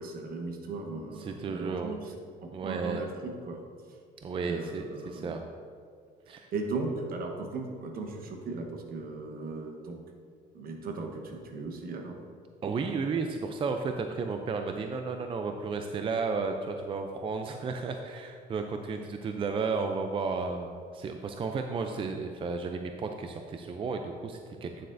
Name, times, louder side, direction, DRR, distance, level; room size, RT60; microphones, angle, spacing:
voice 1, 0.0-3.6 4.4-5.4 6.5-10.0 10.5-12.2, right 3 dB, 60° right, 3 dB, 1.1 m, -37 dB
voice 2, 1.2-2.0 2.5-3.0 4.2-5.4 6.3-6.5 12.6-24.9, right 4 dB, 30° right, 5 dB, 0.4 m, -33 dB
9.1 x 7.5 x 2.6 m, 2.2 s
cardioid pair, 110°, 17 cm